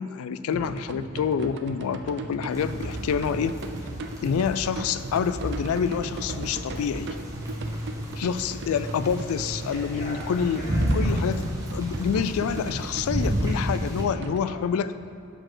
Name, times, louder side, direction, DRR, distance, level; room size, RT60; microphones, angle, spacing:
voice 1, 0.0-3.6 4.2-7.2 8.2-10.6 10.9-11.4 11.7-14.9, left 7 dB, 80° left, 13 dB, 0.3 m, -27 dB
sound 1, 0.5-14.4, right 2 dB, 55° right, 0.5 m, -38 dB
sound 2, 2.5-14.0, equal, 15° right, 1.1 m, -31 dB
voice 2, 7.5-8.2 9.6-11.1 14.4-14.6, equal, 40° left, -7 dB, 1.2 m, -42 dB
6.3 x 5.2 x 6.0 m, 2.3 s
head